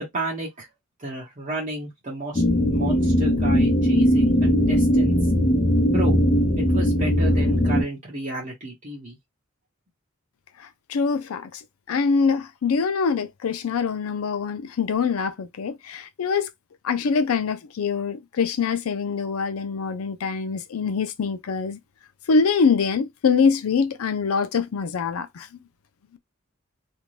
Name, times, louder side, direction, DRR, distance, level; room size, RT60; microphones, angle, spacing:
voice 1, 0.1-0.7 1.0-2.4 2.7-5.2 5.9-6.2 6.6-9.2, right 1 dB, 35° right, 0.8 m, -32 dB
sound 1, 2.4-7.8, equal, 30° left, 0.5 m, -19 dB
voice 2, 10.6-11.6 11.9-16.5 16.8-21.8 22.3-25.5, left 5 dB, 90° left, 0.4 m, -24 dB
2.6 x 2.2 x 3.0 m
head